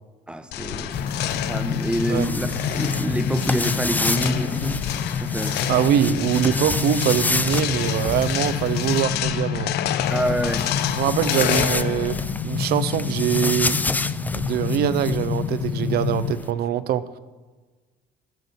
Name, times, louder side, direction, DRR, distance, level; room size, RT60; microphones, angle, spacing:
voice 1, 0.3-4.8 5.1-5.6 10.1-10.6, right 1 dB, 5° right, 10 dB, 0.7 m, -27 dB
sound 1, 0.5-12.4, left 12 dB, 75° left, 0.6 m, -30 dB
sound 2, 0.9-16.3, left 7 dB, 55° left, 1.0 m, -28 dB
sound 3, 0.9-9.0 10.0-16.5, left 3 dB, 10° left, 0.3 m, -30 dB
voice 2, 5.7-9.7 10.9-12.2 12.4-13.8 14.4-17.2, right 11 dB, 70° right, 13 dB, 0.5 m, -23 dB
13.5 x 6.3 x 5.4 m, 1.3 s
cardioid pair, 110°, 17 cm